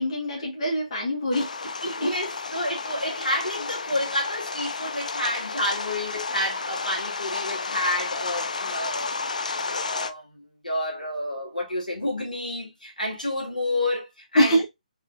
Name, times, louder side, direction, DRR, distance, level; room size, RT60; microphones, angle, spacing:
voice 1, 0.0-1.5 1.8-2.1 14.3-14.6, equal, 45° left, 1.5 m, -24 dB
sound 1, 1.3-10.1, left 4 dB, 65° left, 0.4 m, -32 dB
voice 2, 1.8-9.1 9.6-14.6, left 1 dB, 85° left, 1.9 m, -30 dB
3.6 x 3.2 x 2.5 m
figure-of-eight pair, 140°, 4 cm